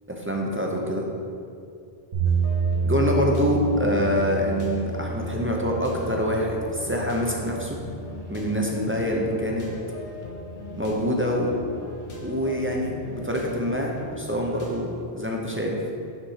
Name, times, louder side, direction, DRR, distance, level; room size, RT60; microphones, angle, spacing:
voice 1, 0.2-1.1 2.8-7.8 8.3-9.6 10.7-11.5 12.2-15.8, equal, 15° right, -1 dB, 0.5 m, -25 dB
sound 1, 2.1-10.2, right 4 dB, 60° right, 1.3 m, -30 dB
sound 2, 2.2-14.8, left 1 dB, 65° left, 1.1 m, -39 dB
6.0 x 4.2 x 5.6 m, 2.4 s
omnidirectional pair, 1.1 m